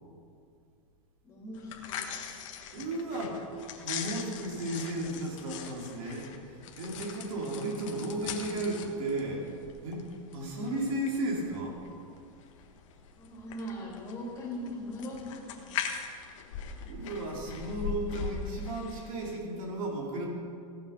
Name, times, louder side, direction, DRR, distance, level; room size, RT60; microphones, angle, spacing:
voice 1, 1.2-2.1 13.1-15.7, left 1 dB, 15° left, -4 dB, 3.0 m, -40 dB
sound 1, 1.5-19.4, left 7 dB, 60° left, 1.5 m, -41 dB
voice 2, 2.7-3.4 3.8-9.5 9.8-11.8 16.8-20.3, right 1 dB, 70° right, -2 dB, 3.7 m, -34 dB
17.0 x 7.0 x 6.0 m, 2.4 s
supercardioid pair, 160°, 18 cm